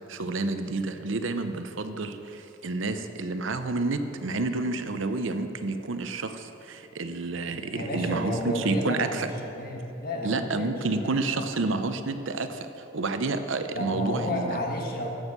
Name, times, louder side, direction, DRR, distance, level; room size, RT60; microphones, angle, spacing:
voice 1, 0.1-9.3 10.2-14.6, right 3 dB, 75° right, 9 dB, 0.7 m, -29 dB
voice 2, 7.7-11.5 13.7-15.1, left 1 dB, 45° left, 0 dB, 1.6 m, -32 dB
14.5 x 6.4 x 6.6 m, 2.9 s
head